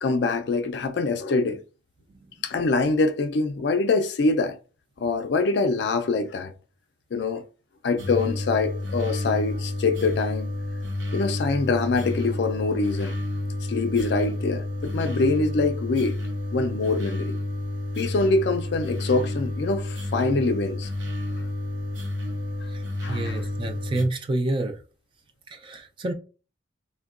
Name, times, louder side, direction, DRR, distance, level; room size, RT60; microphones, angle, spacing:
voice 1, 0.0-1.6 2.4-4.6 5.0-6.5 7.1-7.4 7.8-10.5 11.1-13.2 13.7-16.2 16.5-17.4 18.0-20.9 21.4-21.5 23.0-23.5, left 3 dB, 60° left, 0.4 m, -24 dB
sound 1, 8.0-24.1, left 1 dB, 75° right, 0.7 m, -30 dB
voice 2, 23.1-24.8 25.5-26.1, right 2 dB, 25° right, 0.3 m, -28 dB
3.5 x 2.1 x 2.4 m
head